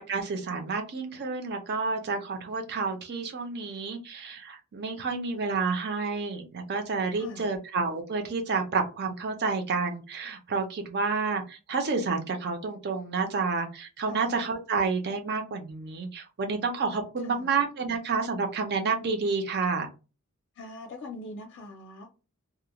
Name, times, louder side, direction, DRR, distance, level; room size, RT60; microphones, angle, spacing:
voice 1, 0.0-19.9, right 4 dB, 50° right, 5 dB, 0.5 m, -30 dB
voice 2, 7.2-7.6 14.1-14.4 17.2-17.5 20.6-22.1, left 2 dB, 55° left, 2 dB, 0.5 m, -42 dB
2.4 x 2.1 x 2.9 m, 0.31 s
head